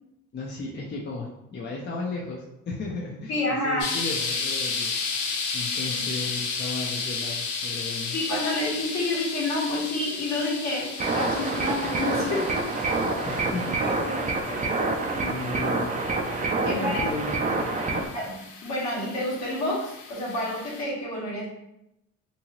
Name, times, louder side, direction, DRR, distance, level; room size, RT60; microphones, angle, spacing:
voice 1, 0.3-8.2 13.3-14.1 15.1-16.0 16.6-17.3 17.9-18.1, left 3 dB, 35° left, -2 dB, 0.5 m, -35 dB
voice 2, 3.3-3.9 5.7-6.0 8.1-12.7 13.2-14.9 16.6-17.0 18.1-21.5, left 1 dB, 60° left, -4 dB, 1.3 m, -29 dB
sound 1, 3.8-20.8, left 4 dB, 85° left, 0.6 m, -34 dB
sound 2, 11.0-18.1, right 3 dB, 25° right, 0.4 m, -27 dB
2.8 x 2.6 x 2.9 m, 0.86 s
cardioid pair, 90°, 30 cm